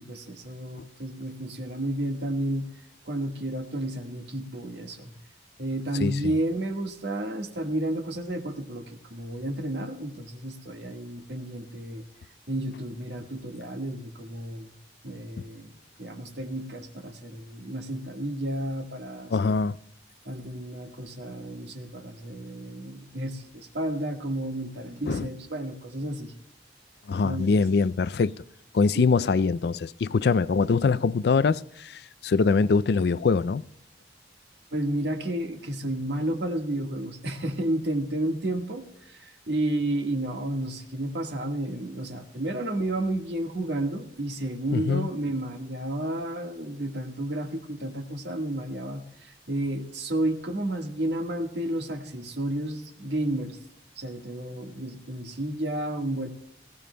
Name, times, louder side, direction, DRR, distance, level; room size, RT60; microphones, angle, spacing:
voice 1, 0.0-2.7 3.0-5.1 5.6-12.0 12.5-14.7 15.0-19.6 20.2-26.3 27.2-27.6 28.9-29.1 30.8-31.0 34.7-53.6 53.9-56.3, right 1 dB, 75° right, 1.6 m, -31 dB
voice 2, 6.0-6.3 19.3-19.8 25.1-25.3 27.1-28.3 28.7-33.6 44.7-45.1, left 4 dB, 65° left, 0.4 m, -23 dB
20.5 x 16.5 x 2.2 m
head